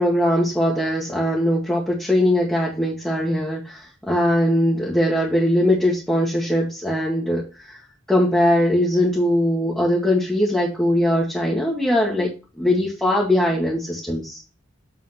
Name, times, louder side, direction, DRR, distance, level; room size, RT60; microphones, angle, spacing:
voice 1, 0.0-7.8 8.1-12.3 12.6-14.4, left 1 dB, 5° left, -5 dB, 1.3 m, -20 dB
7.6 x 3.7 x 5.7 m, 0.32 s
head